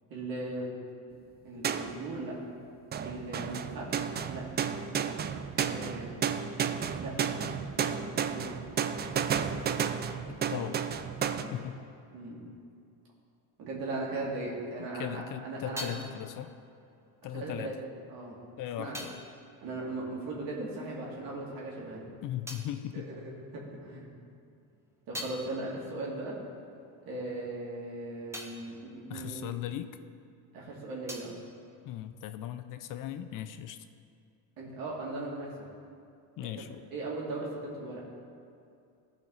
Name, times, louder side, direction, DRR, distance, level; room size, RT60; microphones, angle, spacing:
voice 1, 0.1-0.7 1.4-2.3 3.0-4.4 5.7-6.1 7.0-7.3 7.8-8.5 11.4-11.6 12.1-12.5 13.6-15.9 17.3-18.4 18.8-19.0 19.6-22.1 22.9-24.1 25.1-26.4 27.0-29.5 30.5-31.3 34.6-35.7 36.4-36.6 36.9-38.0, right 2 dB, 60° right, -4 dB, 2.4 m, -38 dB
sound 1, 1.6-2.2 2.9-11.4, right 7 dB, 25° right, 0.3 m, -32 dB
voice 2, 10.3-10.8 11.5-11.8 14.9-16.5 17.2-17.8 18.6-19.2 22.2-23.0 29.1-30.0 31.9-33.9 36.4-36.8, left 11 dB, 55° left, 10 dB, 0.5 m, -38 dB
sound 2, 15.1-20.9 21.2-23.9 24.3-30.3 30.6-32.6, equal, 5° right, 0.9 m, -48 dB
14.5 x 5.2 x 4.0 m, 2.4 s
cardioid pair, 115°, 39 cm